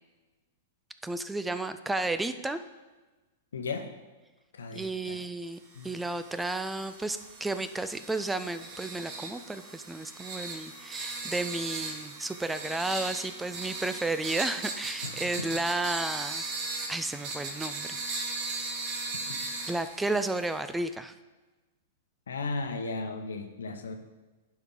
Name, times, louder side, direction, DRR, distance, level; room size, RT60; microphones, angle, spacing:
voice 1, 1.0-2.6 4.7-16.5 16.9-18.0 19.7-21.1, right 2 dB, 5° right, 11 dB, 0.4 m, -32 dB
voice 2, 3.5-3.9 4.5-5.2 5.7-5.9 15.0-15.1 22.3-23.9, left 3 dB, 85° left, 6 dB, 0.9 m, -35 dB
sound 1, 5.8-20.7, right 3 dB, 45° right, 1.4 m, -38 dB
10.5 x 4.6 x 3.8 m, 1.2 s
hypercardioid pair, 120°, 0 cm